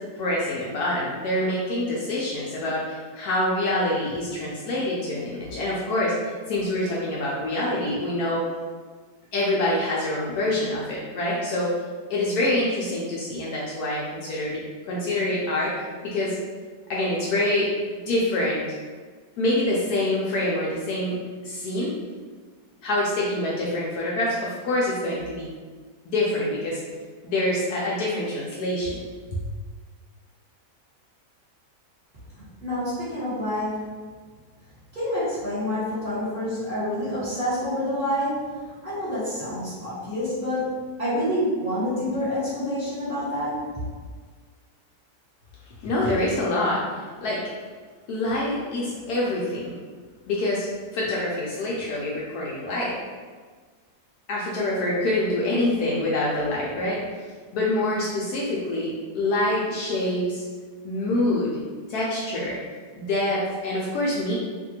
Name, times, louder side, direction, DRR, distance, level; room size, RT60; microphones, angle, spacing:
voice 1, 0.1-8.4 9.3-11.7 12.1-16.4 16.9-17.7 18.1-18.6 19.4-21.2 21.4-21.9 22.8-25.5 26.1-26.8 27.2-29.0 29.3-29.4 45.8-46.8 47.2-47.4 48.1-49.7 50.3-50.7 50.9-53.0 54.3-57.0 57.5-60.4 60.8-61.5 61.9-62.5 63.0-64.3, left 1 dB, 70° left, -5 dB, 1.0 m, -26 dB
voice 2, 32.3-33.8 34.9-43.7, left 1 dB, 35° right, -13 dB, 1.3 m, -28 dB
2.8 x 2.6 x 2.7 m, 1.5 s
omnidirectional pair, 1.9 m